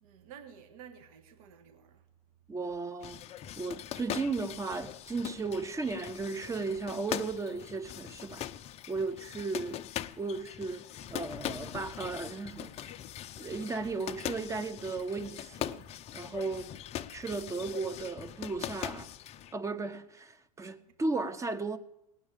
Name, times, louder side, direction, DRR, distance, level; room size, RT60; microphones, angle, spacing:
voice 1, 0.0-2.0, right 8 dB, 60° right, 1.5 m, -52 dB
voice 2, 2.5-3.2 3.6-8.5 8.9-9.8 10.2-12.9 13.4-15.9 16.1-16.7 17.1-19.1 19.5-21.8, right 3 dB, 15° right, 0.9 m, -35 dB
sound 1, 3.0-19.5, left 12 dB, 30° left, 0.5 m, -41 dB
18.5 x 6.2 x 9.0 m
hypercardioid pair, 110°, 20 cm